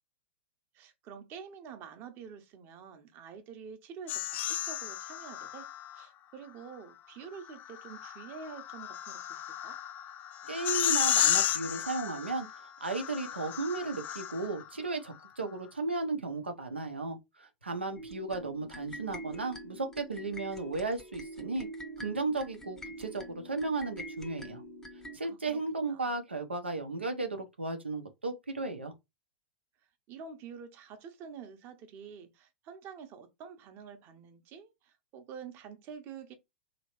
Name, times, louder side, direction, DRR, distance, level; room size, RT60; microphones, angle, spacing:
voice 1, 0.7-5.7 5.9-9.8 25.2-25.6 25.9-26.1 30.1-36.3, right 6 dB, 40° right, 0.9 m, -47 dB
sound 1, 4.1-6.0 7.5-14.7, left 11 dB, 30° left, 0.3 m, -33 dB
voice 2, 10.5-21.7 22.0-24.6 25.1-28.9, right 3 dB, 85° right, 0.8 m, -35 dB
sound 2, 18.0-25.2, right 1 dB, 10° left, 0.7 m, -45 dB
3.0 x 3.0 x 3.0 m
figure-of-eight pair, 100°, 6 cm